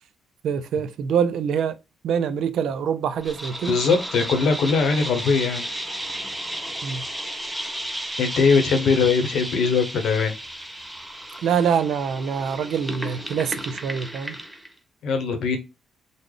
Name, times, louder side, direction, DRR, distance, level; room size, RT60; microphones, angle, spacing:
voice 1, 0.4-1.8 2.0-3.8 6.8-7.0 11.4-14.4, right 7 dB, 75° right, 0.4 m, -25 dB
sound 1, 3.2-14.7, right 1 dB, 5° right, 0.6 m, -33 dB
voice 2, 3.6-5.6 8.2-10.3 15.0-15.6, left 5 dB, 70° left, 0.8 m, -21 dB
3.8 x 2.0 x 3.2 m
cardioid pair, 90°, 0 cm